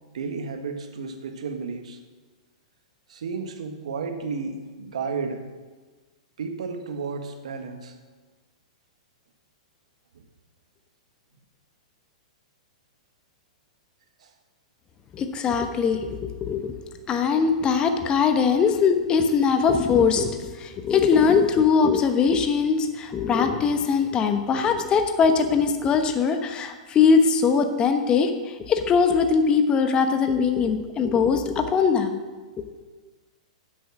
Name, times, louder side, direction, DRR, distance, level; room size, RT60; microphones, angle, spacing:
voice 1, 0.1-2.0 3.1-5.5 6.4-7.9 10.1-10.2 14.2-14.3, right 5 dB, 75° right, 6 dB, 1.5 m, -32 dB
voice 2, 15.1-16.7 17.1-32.2 32.6-32.7, left 5 dB, 25° left, 7 dB, 1.1 m, -21 dB
10.0 x 8.1 x 6.1 m, 1.3 s
hypercardioid pair, 115°, 3 cm